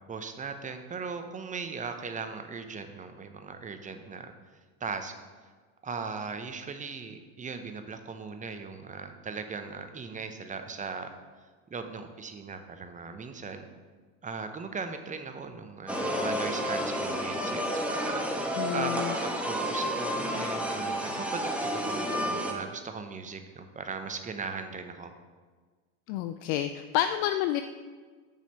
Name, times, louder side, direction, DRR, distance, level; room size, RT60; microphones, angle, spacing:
voice 1, 0.1-4.3 4.8-5.1 5.8-11.1 11.7-13.7 14.2-25.1, right 5 dB, 20° right, 7 dB, 0.7 m, -38 dB
sound 1, 15.9-22.5, equal, 5° right, 1.1 m, -31 dB
voice 2, 18.6-19.1 26.1-27.6, left 12 dB, 55° left, 9 dB, 0.5 m, -29 dB
6.3 x 5.4 x 5.6 m, 1.5 s
hypercardioid pair, 90°, 41 cm